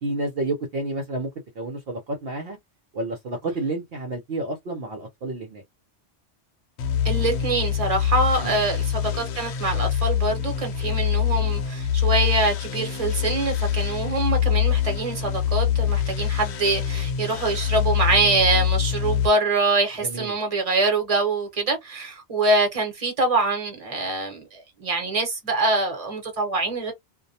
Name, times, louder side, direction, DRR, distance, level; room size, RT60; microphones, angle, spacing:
voice 1, 0.0-1.3 1.6-2.6 2.9-5.6 8.4-8.6 20.0-20.4, right 2 dB, 60° right, 0.8 m, -30 dB
sound 1, 6.8-19.3, left 9 dB, 70° left, 0.8 m, -24 dB
voice 2, 7.0-26.9, right 3 dB, 30° right, 1.0 m, -24 dB
2.3 x 2.1 x 2.6 m
omnidirectional pair, 1.2 m